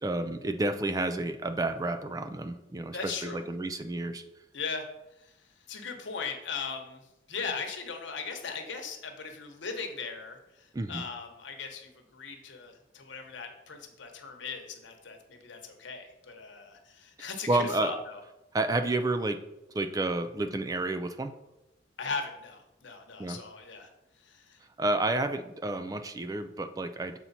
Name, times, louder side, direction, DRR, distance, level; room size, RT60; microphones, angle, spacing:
voice 1, 0.0-3.1 3.5-4.2 10.7-11.0 17.5-17.9 18.5-19.4 19.7-21.3 23.2-23.4 24.8-27.2, right 2 dB, 20° right, 8 dB, 0.3 m, -30 dB
voice 2, 2.9-3.4 4.5-4.9 5.2-18.2 22.0-23.9 24.2-24.6, left 5 dB, 80° left, 4 dB, 1.0 m, -39 dB
7.0 x 4.4 x 4.1 m, 0.94 s
head